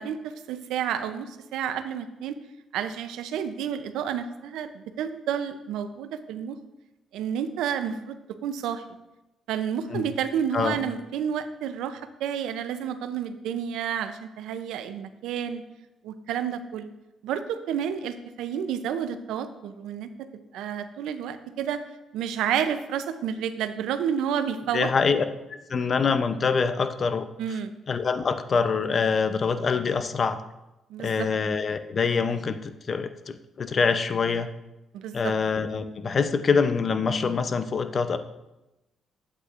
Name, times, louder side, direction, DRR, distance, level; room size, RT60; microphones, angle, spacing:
voice 1, 0.0-2.3 2.7-6.6 7.1-8.1 8.4-8.8 9.5-15.6 16.0-16.9 17.2-20.1 20.5-21.8 22.1-24.9 27.4-27.7 30.9-31.3 34.9-35.3, right 8 dB, 90° right, 10 dB, 0.5 m, -30 dB
voice 2, 24.7-25.2 25.7-27.3 27.9-30.4 31.0-34.5 35.1-38.2, left 5 dB, 45° left, 10 dB, 0.5 m, -25 dB
8.1 x 8.1 x 2.5 m, 0.97 s
cardioid pair, 90°, 0 cm